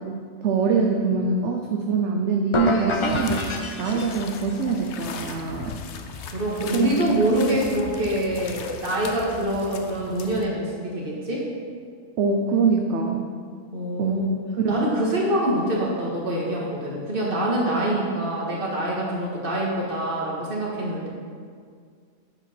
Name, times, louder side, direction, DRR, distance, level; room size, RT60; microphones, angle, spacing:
voice 1, 0.1-3.5 3.8-5.7 6.7-6.9 12.2-13.3 14.0-14.3 14.6-14.9, right 4 dB, 65° right, 2 dB, 0.9 m, -24 dB
sound 1, 2.5-4.6, left 2 dB, 40° left, 0.4 m, -28 dB
sound 2, 2.9-10.5, left 6 dB, 65° left, 0.9 m, -37 dB
voice 2, 6.2-11.5 13.7-14.3 14.7-21.1, right 1 dB, 40° right, -4 dB, 1.9 m, -25 dB
9.0 x 5.0 x 5.9 m, 2.1 s
omnidirectional pair, 1.4 m